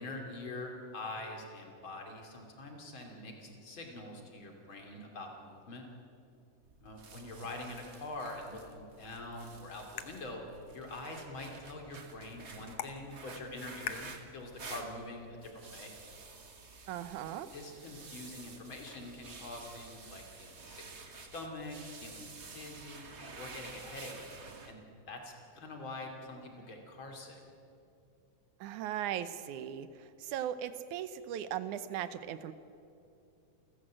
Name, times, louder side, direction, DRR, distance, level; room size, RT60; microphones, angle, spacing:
voice 1, 0.0-5.9 6.8-10.4 10.7-15.9 17.5-23.1 23.4-24.1 24.7-24.8 25.1-27.4, left 2 dB, 40° left, 2 dB, 3.5 m, -45 dB
sound 1, 6.6-24.7, right 4 dB, 40° right, 0.9 m, -51 dB
sound 2, 9.1-15.1, left 9 dB, 65° left, 1.9 m, -48 dB
voice 2, 16.9-17.5 28.6-29.9 30.2-32.5, right 10 dB, 75° right, 13 dB, 2.2 m, -38 dB
29.0 x 14.5 x 7.6 m, 2.6 s
omnidirectional pair, 3.6 m